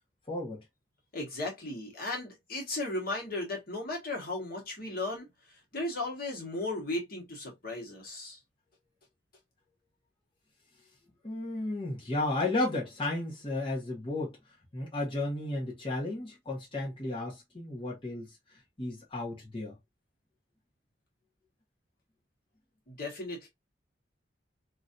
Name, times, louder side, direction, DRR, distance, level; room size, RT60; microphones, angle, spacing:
voice 1, 0.3-0.6 11.2-14.4 14.7-18.3 18.8-19.8, left 2 dB, 30° left, 1.3 m, -33 dB
voice 2, 1.1-5.3 5.7-8.4 22.9-23.5, left 2 dB, 55° left, 1.6 m, -36 dB
3.0 x 2.8 x 2.5 m
head